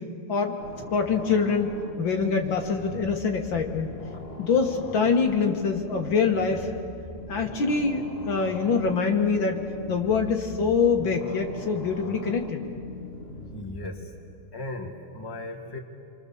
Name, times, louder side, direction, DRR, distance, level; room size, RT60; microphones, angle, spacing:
sound 1, 0.6-13.9, left 2 dB, 30° left, 2.0 m, -41 dB
voice 1, 0.9-1.7 2.0-3.9 4.4-6.7 7.3-9.6 9.9-12.6, left 5 dB, 65° left, 3 dB, 2.1 m, -24 dB
voice 2, 13.5-14.1 14.5-15.8, left 2 dB, 10° left, 1 dB, 1.9 m, -36 dB
28.5 x 25.0 x 7.0 m, 2.5 s
omnidirectional pair, 2.4 m